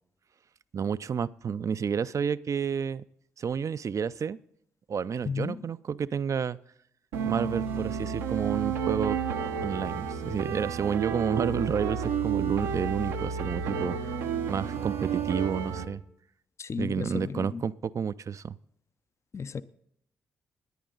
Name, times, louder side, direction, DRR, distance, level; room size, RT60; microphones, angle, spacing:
voice 1, 0.7-3.0 3.4-4.4 4.9-6.6 7.2-9.2 9.6-14.1 14.5-16.0 16.8-18.6, right 7 dB, 50° right, 0.4 m, -30 dB
voice 2, 5.2-5.7 16.6-17.6 19.3-19.6, left 5 dB, 40° left, 0.6 m, -34 dB
sound 1, 7.1-15.9, right 7 dB, 85° right, 0.8 m, -31 dB
17.5 x 10.0 x 3.9 m
hypercardioid pair, 40°, 7 cm